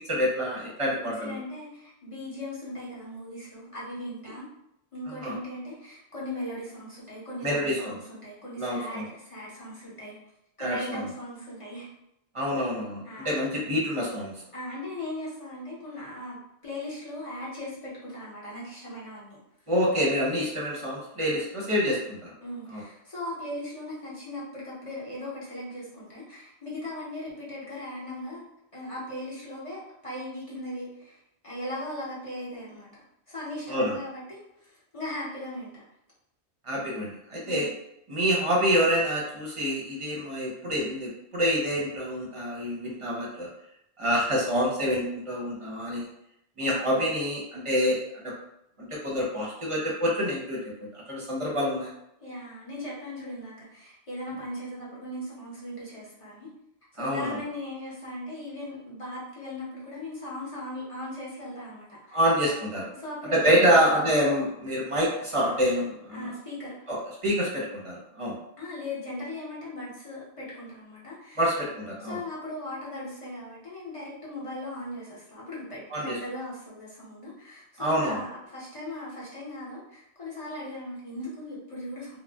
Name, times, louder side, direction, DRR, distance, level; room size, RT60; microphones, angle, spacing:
voice 1, 0.0-1.4 5.2-5.4 7.4-8.0 8.6-9.1 10.6-11.0 12.3-14.3 19.7-22.3 22.7-22.8 33.7-33.9 36.6-37.7 38.1-43.5 44.0-46.1 46.6-48.3 48.8-50.6 50.9-51.9 57.0-57.4 62.1-62.9 63.3-66.3 66.9-67.0 67.2-68.3 71.4-72.2 75.9-76.2 77.8-78.2, equal, 35° right, -4 dB, 0.7 m, -27 dB
voice 2, 1.0-4.5 4.9-10.2 10.6-11.9 13.0-13.3 14.5-16.4 16.6-19.4 22.4-28.4 28.7-35.8 37.4-37.7 46.6-46.8 52.2-56.5 56.9-62.2 62.9-63.9 66.1-66.8 68.6-71.5 72.0-82.2, left 1 dB, 35° left, -7 dB, 0.8 m, -38 dB
2.5 x 2.0 x 3.3 m, 0.79 s
omnidirectional pair, 1.1 m